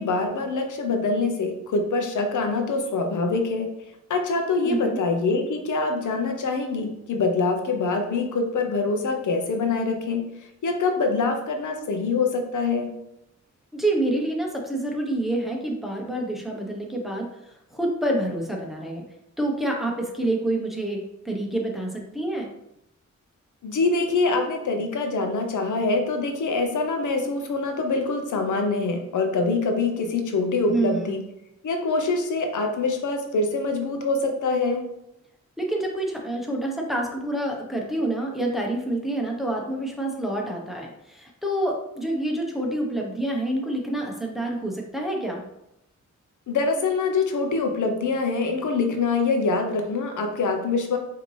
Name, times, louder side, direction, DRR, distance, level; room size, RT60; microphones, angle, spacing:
voice 1, 0.0-3.7 4.1-10.3 10.6-12.9 23.6-31.2 31.6-34.8 46.5-51.0, left 3 dB, 80° left, 4 dB, 0.7 m, -24 dB
voice 2, 4.6-5.0 13.7-19.0 19.4-22.5 30.7-31.2 35.6-45.4, right 1 dB, ahead, -1 dB, 0.8 m, -27 dB
5.1 x 2.8 x 3.2 m, 0.85 s
wide cardioid pair, 95°, 30 cm